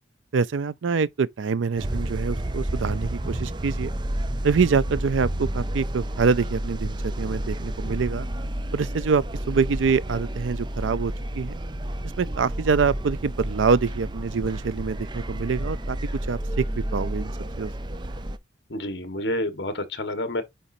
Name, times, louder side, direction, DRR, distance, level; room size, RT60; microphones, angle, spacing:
voice 1, 0.3-3.9 4.4-8.3 8.7-11.5 12.2-17.3 17.6-17.7, right 5 dB, 85° right, 0.5 m, -25 dB
sound 1, 1.8-18.4, right 1 dB, 25° right, 0.5 m, -30 dB
voice 2, 18.7-20.4, left 1 dB, 60° left, 1.5 m, -29 dB
9.0 x 4.2 x 2.7 m
head